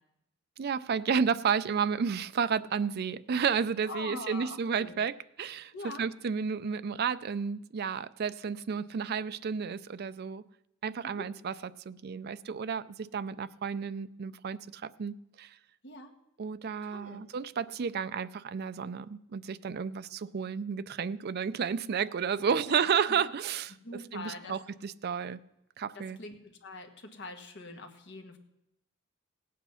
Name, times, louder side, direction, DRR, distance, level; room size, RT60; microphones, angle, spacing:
voice 1, 0.6-10.4 10.8-11.6 11.9-15.5 16.4-23.7 24.1-25.4 25.8-26.2, right 6 dB, 50° right, 0.4 m, -32 dB
voice 2, 3.8-4.9 5.7-6.0 11.0-11.3 15.8-16.1 16.8-17.2 22.7-22.8 23.8-24.6 25.9-28.4, left 3 dB, 55° left, 1.4 m, -44 dB
17.0 x 8.5 x 5.6 m
head